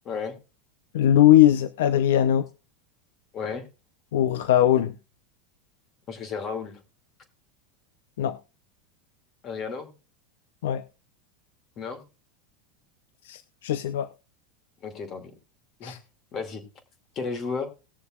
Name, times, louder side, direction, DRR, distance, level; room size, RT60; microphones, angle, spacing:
voice 1, 0.0-0.4 3.3-3.6 6.1-6.8 9.4-9.9 11.8-12.0 14.8-15.3 15.8-16.0 16.3-16.6 17.2-17.7, left 5 dB, 35° left, 2.4 m, -33 dB
voice 2, 0.9-2.5 4.1-4.9 8.2-8.4 10.6-10.8 13.3-14.1 15.8-16.0, left 11 dB, 80° left, 0.6 m, -20 dB
20.0 x 6.9 x 2.4 m
supercardioid pair, 120°, 0 cm